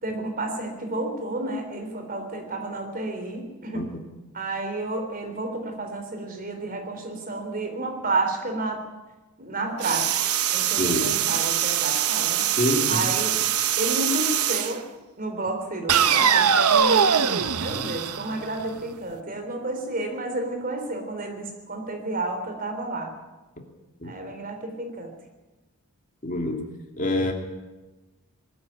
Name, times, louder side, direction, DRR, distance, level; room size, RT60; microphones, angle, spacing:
voice 1, 0.0-3.9 4.3-8.8 9.4-10.3 10.5-12.4 12.9-13.3 13.8-14.8 15.2-23.1 24.0-25.1, right 2 dB, 40° right, 5 dB, 3.5 m, -31 dB
sound 1, 9.8-14.8 15.9-18.8, right 8 dB, 85° right, 1.0 m, -23 dB
voice 2, 10.8-11.1 12.6-13.1 24.0-24.1 26.2-26.7 27.0-27.3, left 1 dB, 35° left, 3 dB, 2.6 m, -26 dB
20.0 x 13.5 x 9.8 m, 1.1 s
head